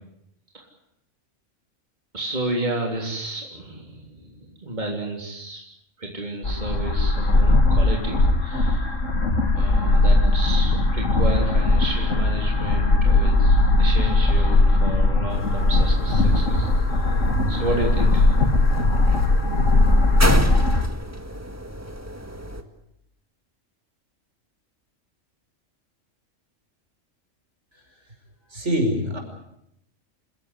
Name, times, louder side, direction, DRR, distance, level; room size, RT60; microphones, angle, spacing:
voice 1, 2.1-5.6 6.0-9.0 9.5-17.2 17.5-18.4, right 1 dB, 35° right, 0 dB, 3.6 m, -31 dB
sound 1, 6.4-20.9, left 2 dB, 80° left, 2.3 m, -19 dB
sound 2, 15.3-22.6, right 1 dB, 10° right, 1.8 m, -32 dB
voice 2, 28.5-29.2, equal, 65° right, 3 dB, 5.8 m, -24 dB
28.0 x 16.5 x 9.8 m, 0.79 s
omnidirectional pair, 1.3 m